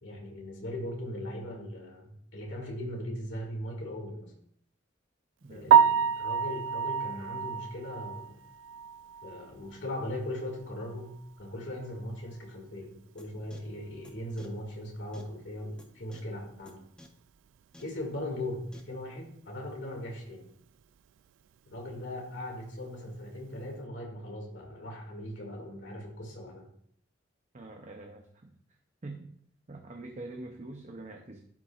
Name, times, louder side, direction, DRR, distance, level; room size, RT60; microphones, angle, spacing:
voice 1, 0.0-4.3 5.5-8.4 9.2-16.8 17.8-20.5 21.7-26.7, left 1 dB, 65° left, 0 dB, 2.5 m, -39 dB
voice 2, 5.4-5.7 27.5-28.6 29.0-29.3 29.7-31.4, right 2 dB, 40° right, 3 dB, 0.7 m, -44 dB
Piano, 5.7-9.7 10.0-10.1 10.6-10.7 11.1-11.2 14.3-14.4 22.9-23.1, right 8 dB, 75° right, 0.3 m, -26 dB
sound 1, 13.2-13.3 13.5-13.6 14.0-14.1 14.4-14.5 15.1-15.2 15.8-15.9 16.1-16.2 16.7-16.8 17.0-17.1 17.7-17.8 18.7-18.8, left 1 dB, 5° left, 0.6 m, -51 dB
12.0 x 5.9 x 2.5 m, 0.64 s
head